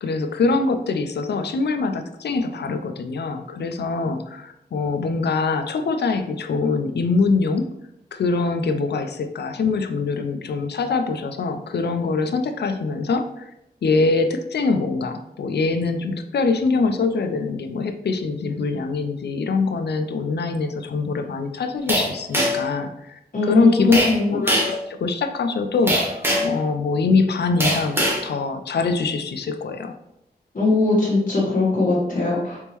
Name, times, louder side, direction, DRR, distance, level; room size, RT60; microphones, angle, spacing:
voice 1, 0.0-7.7 8.1-13.5 13.8-24.0 24.3-29.9, left 4 dB, 75° left, 7 dB, 0.4 m, -23 dB
sound 1, 21.9-22.7 23.9-24.2 24.5-24.8 25.9-26.6 27.6-28.2, equal, 15° right, 1.1 m, -21 dB
voice 2, 23.3-24.4 30.5-32.6, left 2 dB, 50° left, -6 dB, 1.3 m, -20 dB
4.1 x 3.6 x 3.0 m, 0.83 s
wide cardioid pair, 100°, 18 cm